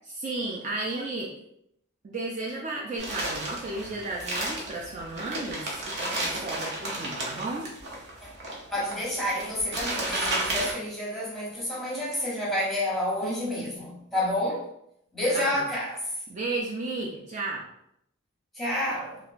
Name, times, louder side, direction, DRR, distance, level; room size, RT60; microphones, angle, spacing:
voice 1, 0.1-1.3 2.0-7.7 13.2-13.7 15.3-15.6 16.3-17.6, right 2 dB, 35° right, -3 dB, 0.3 m, -34 dB
sound 1, 3.0-10.7, right 1 dB, 55° right, 0.7 m, -33 dB
voice 2, 8.7-14.7 15.1-16.1 18.5-19.2, left 1 dB, ahead, -6 dB, 0.9 m, -29 dB
3.1 x 2.4 x 2.5 m, 0.76 s
head